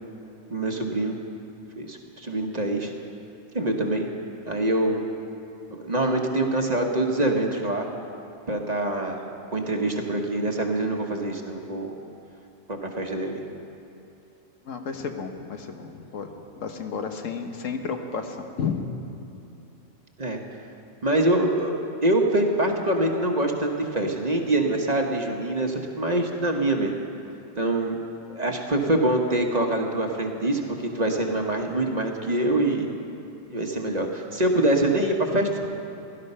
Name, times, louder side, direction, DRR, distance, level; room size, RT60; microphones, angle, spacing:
voice 1, 0.5-1.2 1.8-2.9 3.5-4.1 4.5-5.0 5.7-7.9 8.5-11.9 12.7-13.4 20.2-20.4 21.0-21.7 22.0-27.0 27.6-28.0 28.3-32.9 33.5-35.7, right 1 dB, 35° right, 2 dB, 1.1 m, -25 dB
voice 2, 14.6-16.3 16.6-18.9, left 6 dB, 75° left, 5 dB, 1.4 m, -32 dB
17.0 x 12.0 x 5.5 m, 2.9 s
omnidirectional pair, 1.3 m